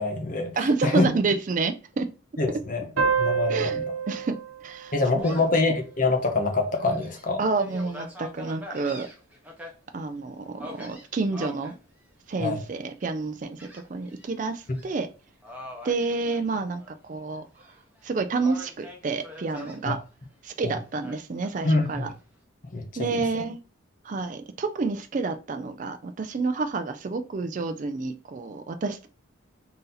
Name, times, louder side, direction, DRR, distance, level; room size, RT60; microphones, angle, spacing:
voice 1, 0.0-0.6 0.8-1.1 2.4-2.8 3.2-3.7 4.9-7.4 12.4-12.6 14.7-14.8 19.9-20.0 20.6-20.7 21.6-22.1 22.7-23.2, left 3 dB, 40° left, 4 dB, 0.7 m, -25 dB
voice 2, 0.6-2.1 3.5-4.4 4.6-5.3 7.4-9.1 9.9-11.8 12.3-15.1 15.8-16.8 17.1-17.5 18.0-20.0 20.4-22.1 23.0-23.6 24.0-29.1, right 3 dB, 40° right, 9 dB, 0.3 m, -29 dB
sound 1, 3.0-6.1, right 6 dB, 85° right, 0.9 m, -29 dB
Gull seagull, 5.2-5.6 6.1-6.2 6.7-9.7 10.6-11.7 12.3-12.7 13.6-14.3 14.6-14.9 15.4-17.0 17.3-18.0 18.4-19.8 21.0-22.0, left 2 dB, 10° right, 0.8 m, -43 dB
3.9 x 2.7 x 3.9 m, 0.34 s
head